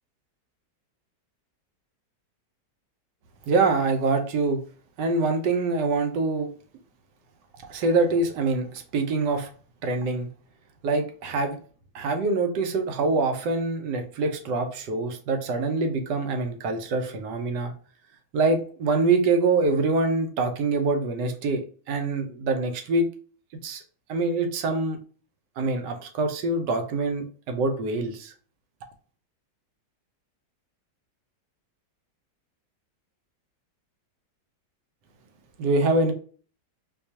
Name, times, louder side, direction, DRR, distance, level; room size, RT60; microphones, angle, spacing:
voice 1, 3.5-4.6 5.0-6.5 7.6-9.5 9.8-10.3 10.8-11.6 11.9-17.7 18.3-23.1 23.6-23.8 24.1-25.0 25.6-28.3 35.6-36.1, right 3 dB, 75° right, 6 dB, 1.3 m, -25 dB
4.5 x 2.3 x 2.7 m, 0.41 s
omnidirectional pair, 1.9 m